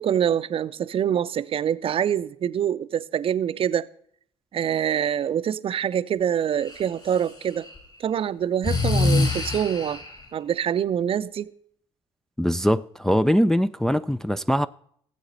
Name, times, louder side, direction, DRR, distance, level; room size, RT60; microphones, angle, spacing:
voice 1, 0.0-3.9 4.5-7.7 8.0-10.0 10.3-11.5, right 9 dB, 45° right, 0.6 m, -25 dB
Breathing, 6.6-7.8 8.6-10.2, left 3 dB, 35° left, 4.6 m, -25 dB
voice 2, 12.4-14.7, equal, 5° left, 0.4 m, -22 dB
17.5 x 8.0 x 4.0 m
hypercardioid pair, 55°, 14 cm